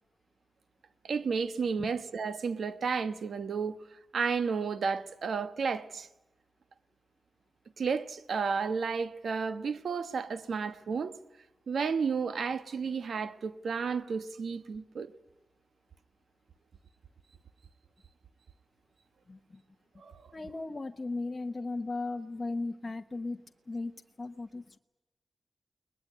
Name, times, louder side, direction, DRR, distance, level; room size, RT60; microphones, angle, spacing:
voice 1, 1.0-3.8 4.1-6.1 7.8-11.2 11.7-15.1 20.0-20.2, right 5 dB, 90° right, 1.2 m, -32 dB
voice 2, 19.3-19.6 20.3-23.9 24.2-24.8, left 3 dB, 45° left, 1.1 m, -37 dB
21.5 x 20.5 x 9.5 m
cardioid pair, 55°, 0 cm